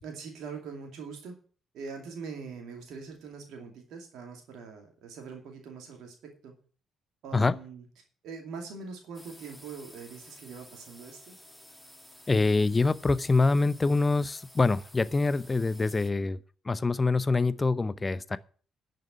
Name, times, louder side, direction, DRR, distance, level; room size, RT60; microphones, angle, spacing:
voice 1, 0.0-1.4 1.7-6.5 7.2-7.8 8.2-11.3, right 5 dB, 60° right, 2.5 m, -42 dB
sound 1, 9.1-16.1, equal, ahead, 2.2 m, -53 dB
voice 2, 12.3-16.4 16.6-18.4, left 3 dB, 25° left, 0.7 m, -25 dB
10.5 x 6.6 x 8.6 m
figure-of-eight pair, 40°, 0 cm